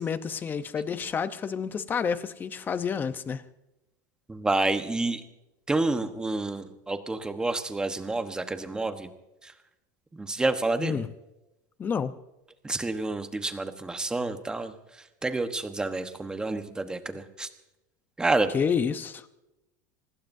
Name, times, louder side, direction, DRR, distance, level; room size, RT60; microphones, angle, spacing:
voice 1, 0.0-3.4 10.8-11.1 11.8-12.1 18.5-19.3, left 6 dB, 20° left, 11 dB, 0.8 m, -29 dB
voice 2, 4.3-5.2 5.7-9.1 9.4-9.5 10.1-11.0 12.6-14.7 15.2-17.5 18.2-18.5, right 2 dB, 10° right, 8 dB, 1.1 m, -29 dB
25.0 x 19.5 x 2.7 m, 0.94 s
supercardioid pair, 155°, 10 cm